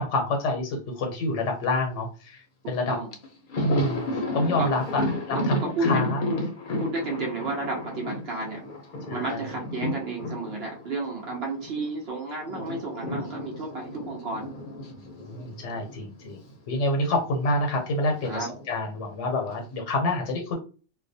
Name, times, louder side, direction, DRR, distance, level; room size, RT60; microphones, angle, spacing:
voice 1, 0.0-3.0 3.6-6.2 9.1-9.4 15.2-16.4 16.7-20.6, left 2 dB, 85° left, 3 dB, 0.9 m, -27 dB
voice 2, 2.6-3.1 4.6-4.7 5.3-6.1 6.3-6.4 6.8-8.6 9.1-14.5 18.2-18.5, right 3 dB, 65° right, -1 dB, 0.8 m, -32 dB
Thunder, 2.7-2.8 3.1-11.9 12.2-16.5 16.8-16.9 18.1-18.8, left 2 dB, 55° left, 0.6 m, -32 dB
2.3 x 2.1 x 2.6 m, 0.36 s
omnidirectional pair, 1.2 m